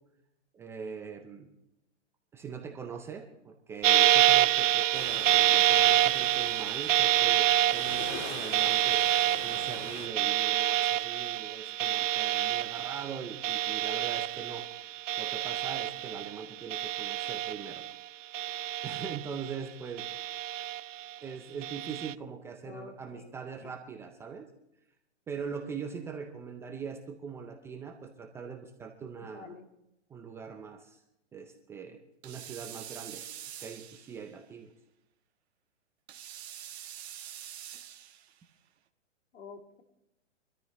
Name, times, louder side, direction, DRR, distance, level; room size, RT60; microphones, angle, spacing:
voice 1, 0.5-1.5 2.3-14.7 15.2-17.8 18.3-18.6 18.8-20.0 21.2-24.5 25.3-29.5 30.1-31.0 31.3-33.2 33.6-34.7, right 6 dB, 5° right, 4 dB, 0.5 m, -42 dB
sound 1, 3.8-16.4 16.7-17.9 18.3-19.6 20.0-21.0 21.6-22.1, right 12 dB, 80° right, 0.5 m, -27 dB
sound 2, 4.9-10.1, left 4 dB, 30° left, 2.6 m, -43 dB
voice 2, 22.6-23.3 23.6-23.7 29.2-29.7 39.3-39.8, left 5 dB, 75° left, 4 dB, 2.8 m, -48 dB
sound 3, 32.2-34.4 36.1-38.4, right 10 dB, 60° right, 1.5 m, -45 dB
24.0 x 13.5 x 3.1 m, 0.85 s
hypercardioid pair, 140°, 37 cm